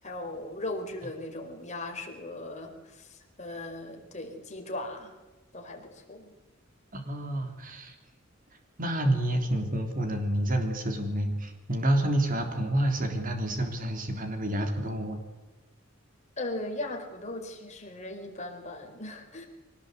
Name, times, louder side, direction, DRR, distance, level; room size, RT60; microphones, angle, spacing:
voice 1, 0.0-5.2 5.5-6.3 16.4-19.5, left 2 dB, 35° left, 2 dB, 4.6 m, -38 dB
voice 2, 6.9-7.9 8.8-15.2, right 1 dB, 45° right, 5 dB, 3.5 m, -28 dB
24.5 x 18.5 x 8.3 m, 1.2 s
head